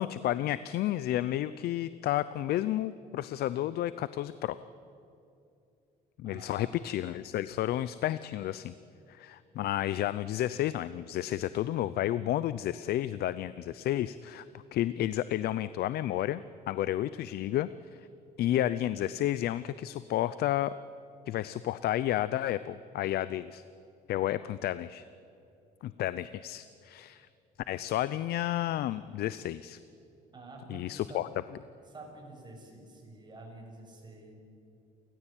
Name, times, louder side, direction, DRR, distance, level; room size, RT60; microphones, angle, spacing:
voice 1, 0.0-4.6 6.2-8.7 9.1-18.0 18.4-20.7 21.3-23.6 24.1-25.0 25.8-27.3 27.7-29.8 30.7-31.3, left 13 dB, 70° left, 15 dB, 0.6 m, -31 dB
voice 2, 6.2-6.7 7.0-7.2 30.3-31.3 31.9-34.3, right 2 dB, 25° right, 1 dB, 7.1 m, -48 dB
30.0 x 14.5 x 9.0 m, 2.6 s
cardioid pair, 110°, 17 cm